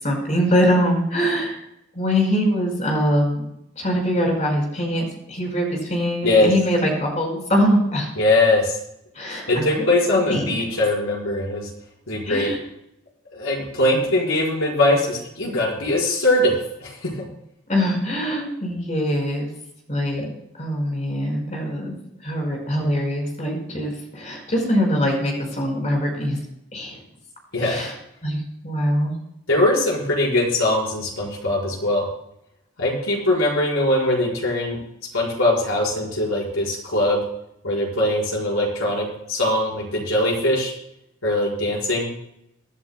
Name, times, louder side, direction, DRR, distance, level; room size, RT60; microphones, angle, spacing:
voice 1, 0.0-1.6 1.9-3.5 3.8-8.1 9.1-9.9 10.1-10.6 12.2-12.6 17.7-19.5 19.9-20.2 20.6-21.9 22.2-26.4 26.7-27.0 27.6-27.9 28.2-28.4 28.6-29.1, equal, 35° left, 0 dB, 5.0 m, -23 dB
voice 2, 8.2-8.8 9.5-11.7 12.1-12.5 13.3-17.2 27.5-27.8 29.5-32.0 32.8-34.8 35.1-37.2 37.6-40.7 41.2-42.1, left 1 dB, 75° left, -2 dB, 4.9 m, -21 dB
23.5 x 11.0 x 2.2 m, 0.79 s
head